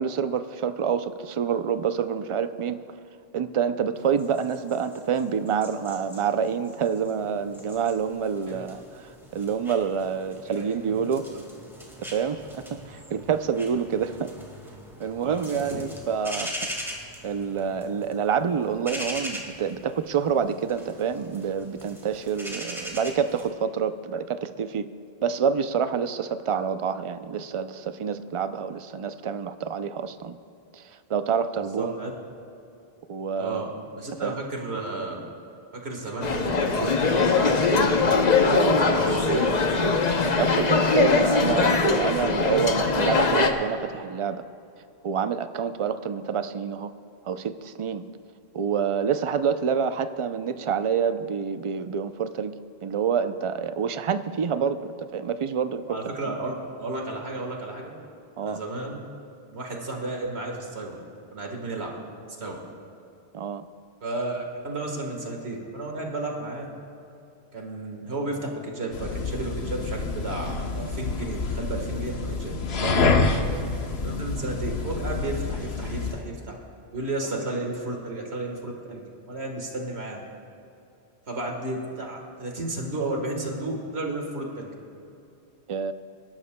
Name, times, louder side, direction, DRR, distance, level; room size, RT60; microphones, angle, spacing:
voice 1, 0.0-2.8 3.3-11.3 12.0-14.3 15.0-16.7 17.2-24.9 25.2-30.4 30.7-31.9 33.1-33.6 34.2-34.4 38.4-39.0 40.4-44.4 45.0-46.9 47.3-48.1 48.5-55.8 56.2-56.4 58.4-58.6 63.3-63.6 72.8-73.5 77.3-77.4 85.7-85.9, right 7 dB, 55° right, 11 dB, 0.3 m, -27 dB
sound 1, 4.0-23.5, equal, ahead, 1.8 m, -41 dB
voice 2, 10.6-11.4 15.2-15.8 31.8-32.1 33.4-33.7 34.0-35.2 35.7-38.0 38.9-39.5 55.9-58.0 58.4-59.0 59.5-61.0 61.3-61.9 62.4-62.6 64.0-66.7 67.5-72.6 74.0-76.5 76.9-80.2 81.3-84.7, right 2 dB, 75° right, 1 dB, 1.8 m, -33 dB
sound 2, 36.2-43.5, left 4 dB, 45° left, 0.8 m, -21 dB
sound 3, 68.9-76.2, left 4 dB, 75° left, 1.1 m, -27 dB
25.0 x 12.0 x 2.2 m, 2.7 s
omnidirectional pair, 1.1 m